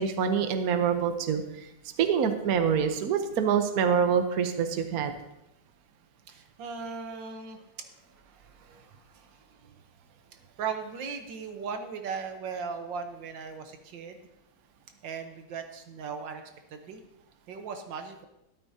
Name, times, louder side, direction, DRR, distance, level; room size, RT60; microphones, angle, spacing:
voice 1, 0.0-1.4 2.0-5.2, right 7 dB, 60° right, 7 dB, 1.3 m, -25 dB
voice 2, 6.3-9.7 10.6-14.2 15.0-16.4 16.7-17.0 17.5-18.3, right 6 dB, 85° right, 6 dB, 1.7 m, -38 dB
12.5 x 12.5 x 2.8 m, 0.86 s
omnidirectional pair, 2.0 m